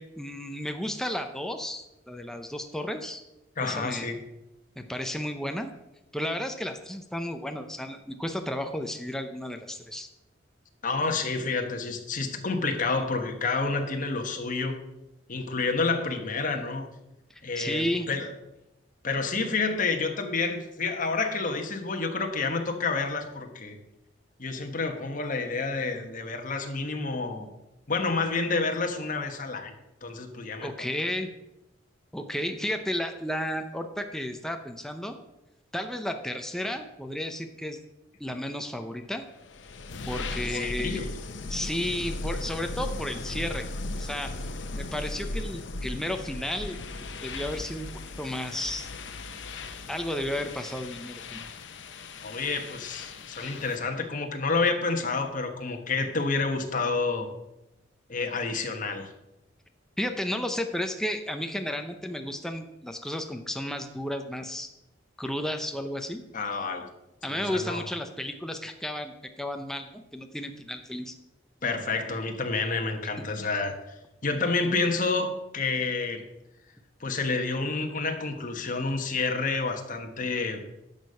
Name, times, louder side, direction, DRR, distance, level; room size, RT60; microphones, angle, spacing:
voice 1, 0.0-3.2 3.6-4.1 4.8-5.7 6.1-10.1 17.3-18.1 30.6-31.3 32.1-35.2 35.7-37.8 38.2-39.2 40.0-41.0 41.5-43.7 43.9-44.3 44.7-46.8 47.2-47.9 48.2-48.9 49.9-51.5 60.0-64.7 65.2-66.2 67.2-71.1 73.2-73.3, left 1 dB, 5° left, 5 dB, 0.6 m, -33 dB
voice 2, 3.6-4.2 10.8-14.8 15.3-16.9 17.4-18.3 19.0-23.8 24.4-27.5 27.9-29.7 30.0-30.9 40.3-41.1 52.2-57.3 58.1-59.1 66.3-66.8 67.3-67.8 71.6-73.8 74.2-76.2 77.0-80.6, left 3 dB, 45° left, 4 dB, 1.3 m, -29 dB
sound 1, 39.3-53.9, left 2 dB, 75° left, 0.8 m, -37 dB
10.5 x 6.6 x 5.5 m, 0.93 s
head